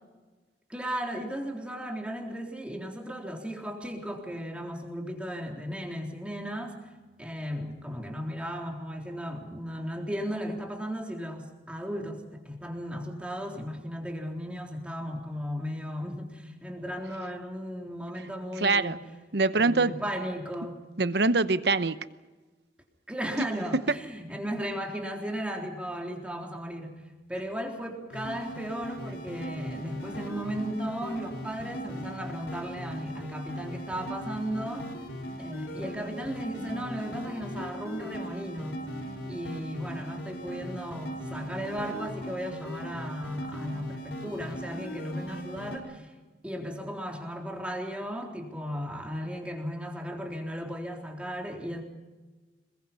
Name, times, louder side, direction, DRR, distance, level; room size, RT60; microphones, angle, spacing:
voice 1, 0.7-6.8 7.2-19.0 19.5-20.8 23.1-27.0 27.3-34.9 35.4-38.8 39.3-46.1 46.4-51.8, equal, 5° right, 1 dB, 3.7 m, -35 dB
voice 2, 18.6-19.0 19.3-19.9 21.0-22.0, right 3 dB, 65° right, 13 dB, 0.9 m, -24 dB
sound 1, 28.1-45.8, equal, 90° left, 5.2 m, -39 dB
27.0 x 22.0 x 5.6 m, 1.3 s
head